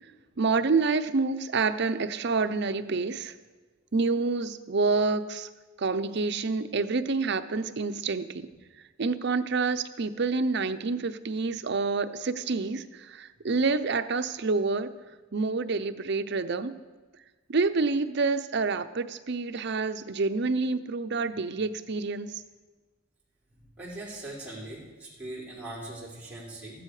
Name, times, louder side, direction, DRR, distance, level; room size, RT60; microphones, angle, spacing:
voice 1, 0.4-3.3 3.9-5.5 5.8-8.3 9.0-12.8 13.1-14.9 15.3-16.7 17.5-22.3, right 4 dB, 60° right, 10 dB, 0.7 m, -27 dB
voice 2, 23.5-26.8, right 1 dB, 5° right, -10 dB, 4.5 m, -41 dB
15.0 x 12.0 x 4.9 m, 1.3 s
head